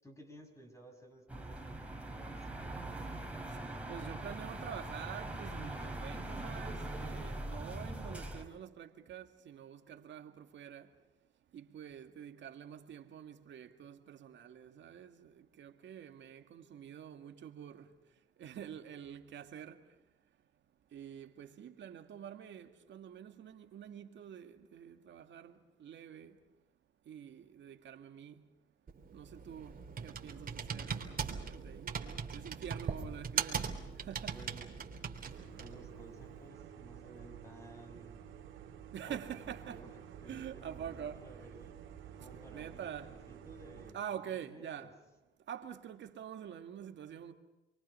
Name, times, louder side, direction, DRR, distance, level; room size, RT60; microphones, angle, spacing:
voice 1, 0.0-2.7 34.3-34.6 35.6-38.2 39.1-39.4 39.7-39.9 40.2-41.7 42.2-44.9, right 1 dB, 15° left, 6.5 m, -55 dB
sound 1, 1.3-8.4, right 1 dB, 5° right, 4.7 m, -42 dB
voice 2, 3.9-10.9 11.5-17.9 18.4-19.8 20.9-26.3 27.1-28.4 29.1-33.6 34.0-34.4 38.9-39.9 40.3-41.2 42.5-43.1 43.9-45.0 45.5-47.3, right 9 dB, 70° right, 2.1 m, -47 dB
Computer keyboard, 28.9-35.9, right 6 dB, 45° right, 3.4 m, -40 dB
sound 2, 35.3-43.9, right 8 dB, 85° right, 3.8 m, -51 dB
29.5 x 23.5 x 5.7 m
cardioid pair, 90°, 20 cm